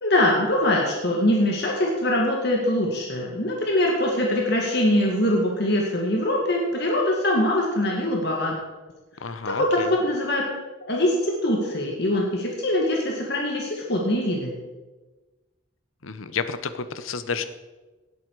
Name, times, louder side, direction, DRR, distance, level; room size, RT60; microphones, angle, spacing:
voice 1, 0.0-8.6 9.2-10.5 10.9-14.5, left 1 dB, 55° left, -1 dB, 2.0 m, -23 dB
voice 2, 9.2-9.9 16.0-17.4, left 5 dB, 85° left, 11 dB, 0.9 m, -30 dB
18.0 x 8.6 x 4.8 m, 1.2 s
head